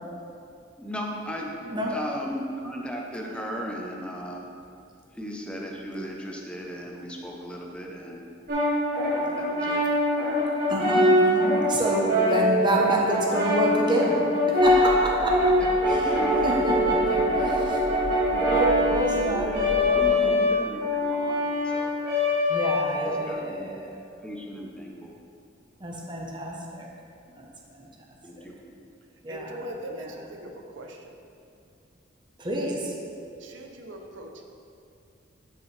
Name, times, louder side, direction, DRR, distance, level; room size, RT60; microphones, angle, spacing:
voice 1, 0.8-1.5 1.9-4.4 5.1-8.2 9.1-9.8 12.2-12.5 15.6-16.8 17.2-17.5 19.1-21.9 23.0-23.7 24.2-25.1 28.2-28.6, equal, 5° left, -1 dB, 0.8 m, -36 dB
voice 2, 1.6-1.9 10.7-14.2 14.6-15.5 15.9-17.2 18.3-20.4 22.5-23.9 25.8-26.9 27.4-27.5 27.7-27.8 28.4-28.5 29.2-29.6 29.9-30.0 32.4-32.9, right 1 dB, 25° right, -1 dB, 1.0 m, -28 dB
Brass instrument, 8.5-23.3, left 1 dB, 55° right, 1.9 m, -23 dB
sound 1, 14.6-20.1, equal, 50° left, 1.4 m, -38 dB
voice 3, 29.3-31.2 33.4-34.4, right 1 dB, 70° right, 3 dB, 0.7 m, -41 dB
10.5 x 5.5 x 3.3 m, 2.5 s
head